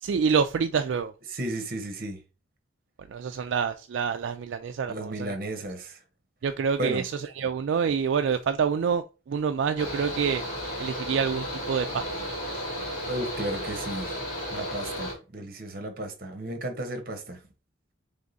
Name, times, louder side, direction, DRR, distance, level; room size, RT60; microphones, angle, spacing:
voice 1, 0.0-1.1 3.1-5.4 6.4-10.4 10.8-12.1 12.5-12.7, right 6 dB, 70° right, 0.3 m, -27 dB
voice 2, 1.3-2.2 4.9-6.0 6.8-7.0 13.1-14.2 14.5-17.4, right 1 dB, 45° right, 0.9 m, -34 dB
Mechanical fan, 9.8-15.1, equal, 35° left, 2.6 m, -33 dB
3.6 x 3.5 x 3.9 m
head